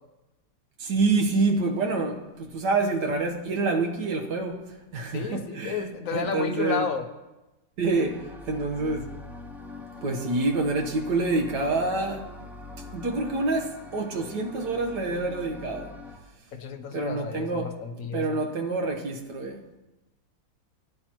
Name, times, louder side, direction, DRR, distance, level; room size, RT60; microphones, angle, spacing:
voice 1, 0.8-4.6 4.9-5.8 6.1-6.9 7.8-9.1 10.0-12.3 12.9-15.9 16.9-17.7 18.1-19.6, right 3 dB, 60° right, 1.7 m, -27 dB
voice 2, 5.1-7.1 16.5-18.4, left 5 dB, 60° left, 0.9 m, -32 dB
sound 1, 7.9-16.2, left 3 dB, 5° right, 0.3 m, -43 dB
15.5 x 9.7 x 3.0 m
omnidirectional pair, 2.1 m